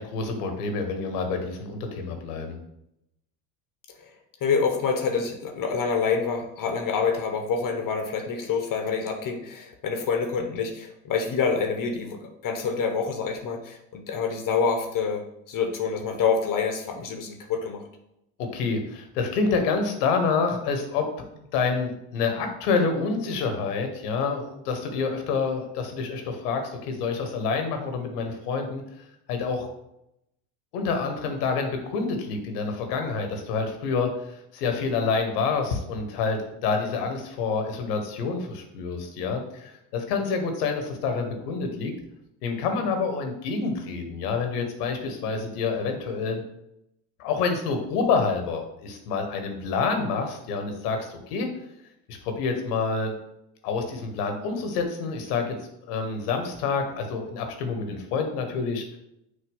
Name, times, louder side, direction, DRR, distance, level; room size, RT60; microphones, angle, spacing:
voice 1, 0.0-2.6 18.4-21.1 21.4-28.8 29.3-29.7 30.7-41.9 42.4-46.4 47.2-51.5 52.1-53.1 53.6-55.5 55.9-59.0, left 4 dB, 80° left, 5 dB, 1.4 m, -27 dB
voice 2, 4.4-17.8, left 5 dB, 45° left, 4 dB, 1.1 m, -27 dB
6.5 x 2.7 x 5.5 m, 0.82 s
hypercardioid pair, 80°, 46 cm